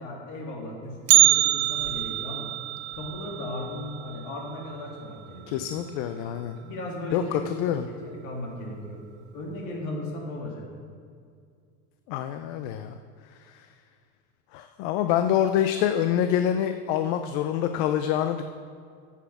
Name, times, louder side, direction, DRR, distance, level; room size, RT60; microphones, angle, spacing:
voice 1, 0.0-2.5 2.9-5.7 6.6-7.6 8.0-9.0 9.3-10.7, left 1 dB, 60° left, -1 dB, 2.5 m, -36 dB
Bell, 1.1-5.2 5.5-5.6 6.0-6.1 6.9-7.0 7.8-8.1 8.4-8.5, right 15 dB, 50° right, 0.5 m, -24 dB
voice 2, 5.5-6.6 7.1-7.9 12.1-13.0 13.4-13.7 14.5-18.4, left 10 dB, 80° left, 8 dB, 0.6 m, -26 dB
7.5 x 7.0 x 7.1 m, 2.2 s
cardioid pair, 135°, 33 cm